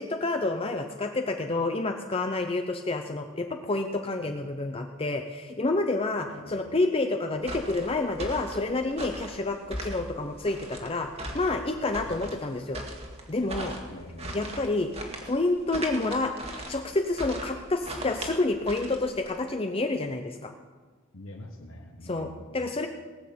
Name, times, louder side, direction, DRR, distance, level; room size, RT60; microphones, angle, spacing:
voice 1, 0.0-11.1 11.3-12.8 13.3-13.8 14.3-14.9 15.3-16.3 16.7-20.5 22.0-22.9, left 2 dB, 25° left, 5 dB, 0.7 m, -29 dB
sound 1, 7.4-19.4, right 1 dB, 30° right, 1.9 m, -39 dB
voice 2, 13.9-14.6 21.1-22.6, left 1 dB, 70° left, 1 dB, 1.5 m, -45 dB
18.5 x 6.5 x 8.5 m, 1.4 s
head